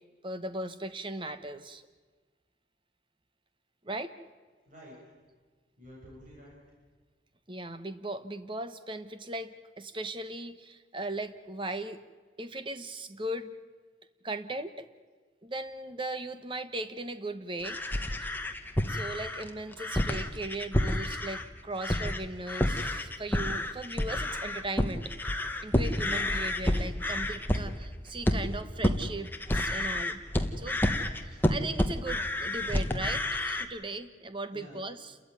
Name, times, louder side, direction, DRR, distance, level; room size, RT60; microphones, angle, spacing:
voice 1, 0.2-1.8 3.8-4.1 7.5-12.0 12.4-13.6 14.2-14.9 15.4-17.8 18.8-25.1 25.6-30.2 30.6-30.8 31.2-35.2, right 2 dB, 25° right, 11 dB, 1.1 m, -38 dB
voice 2, 4.6-5.0 5.8-6.6 21.7-21.8 26.1-26.4 31.2-31.4 34.5-34.8, equal, 40° right, -5 dB, 7.6 m, -50 dB
sound 1, 17.6-21.5 21.8-22.2 22.5-33.7, left 1 dB, 10° left, 1.2 m, -30 dB
29.0 x 14.0 x 9.4 m, 1.4 s
head